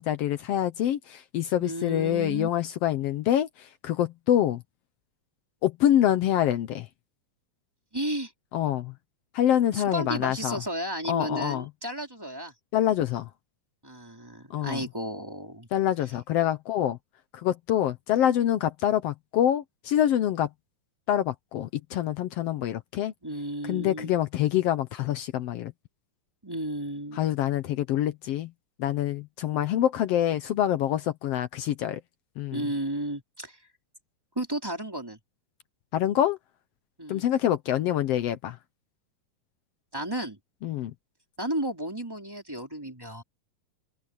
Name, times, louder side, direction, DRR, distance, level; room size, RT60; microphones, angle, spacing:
voice 1, 0.0-4.6 5.6-6.9 8.5-8.9 9.3-10.6 11.1-11.6 12.7-13.3 14.5-14.9 15.7-17.0 17.3-20.5 21.1-23.1 23.6-25.7 27.1-28.5 28.8-32.0 32.4-32.6 35.9-36.4 37.1-38.6 40.6-40.9, left 11 dB, 85° left, 1.3 m, -26 dB
voice 2, 1.6-2.5 7.9-8.3 9.7-12.5 13.8-15.7 23.2-24.1 26.4-27.2 32.5-33.6 34.3-35.2 37.0-37.2 39.9-40.4 41.4-43.2, right 1 dB, 5° right, 3.1 m, -33 dB
omnidirectional pair, 3.9 m